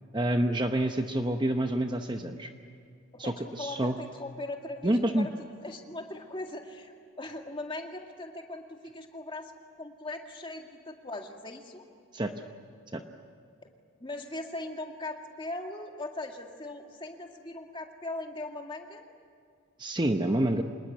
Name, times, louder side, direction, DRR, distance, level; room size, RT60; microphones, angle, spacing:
voice 1, 0.1-2.5 3.2-4.0 4.8-5.3 12.1-12.3 12.9-13.0 19.8-20.6, right 1 dB, 20° right, 6 dB, 0.9 m, -27 dB
voice 2, 3.1-5.3 5.6-9.5 9.8-11.8 13.6-13.7 14.0-19.1, left 2 dB, 25° left, 3 dB, 2.1 m, -39 dB
26.0 x 20.5 x 9.5 m, 2.3 s
head